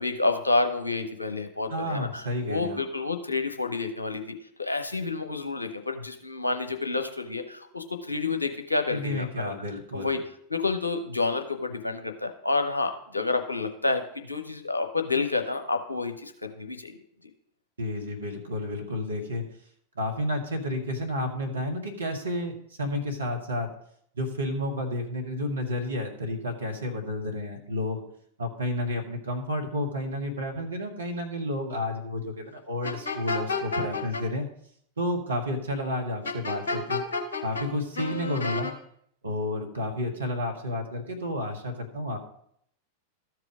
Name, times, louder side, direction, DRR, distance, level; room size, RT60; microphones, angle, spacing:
voice 1, 0.0-9.5 9.9-10.2 10.5-17.0, left 3 dB, 85° left, 6 dB, 0.9 m, -29 dB
voice 2, 1.7-2.8 8.9-10.2 17.8-19.4 19.9-23.7 24.1-28.0 28.4-34.5 35.0-37.0 37.4-38.7 39.2-42.2, left 1 dB, 75° right, 3 dB, 1.6 m, -31 dB
sound 1, 32.8-34.2 36.2-37.7 37.9-38.7, left 4 dB, 65° left, 1.2 m, -30 dB
13.0 x 4.8 x 5.0 m, 0.68 s
figure-of-eight pair, 90°, 0 cm